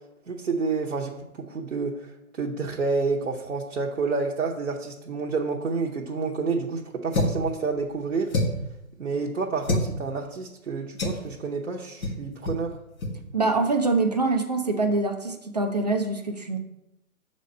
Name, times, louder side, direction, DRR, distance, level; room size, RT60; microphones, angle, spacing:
voice 1, 0.3-2.0 2.4-8.3 9.0-12.7, right 4 dB, 60° right, -1 dB, 1.0 m, -29 dB
sound 1, 7.1-7.5 8.3-8.7 9.6-9.9 11.0-11.3 12.0-12.2 12.5-12.6 13.0-13.2, left 1 dB, 65° left, 2.0 m, -26 dB
voice 2, 13.3-16.6, right 3 dB, 30° right, 4 dB, 0.6 m, -24 dB
7.1 x 4.3 x 5.3 m, 0.87 s
figure-of-eight pair, 150°, 45 cm